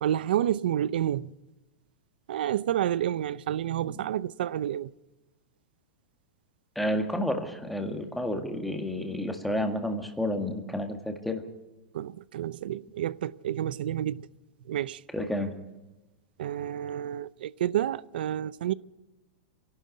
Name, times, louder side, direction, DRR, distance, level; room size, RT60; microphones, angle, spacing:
voice 1, 0.0-1.3 2.3-4.9 11.9-14.3 14.7-15.0 16.4-18.7, right 11 dB, 75° right, 0.6 m, -29 dB
voice 2, 6.8-11.4 15.1-15.5, left 1 dB, ahead, 1.8 m, -30 dB
26.5 x 12.0 x 9.5 m
supercardioid pair, 155°, 5 cm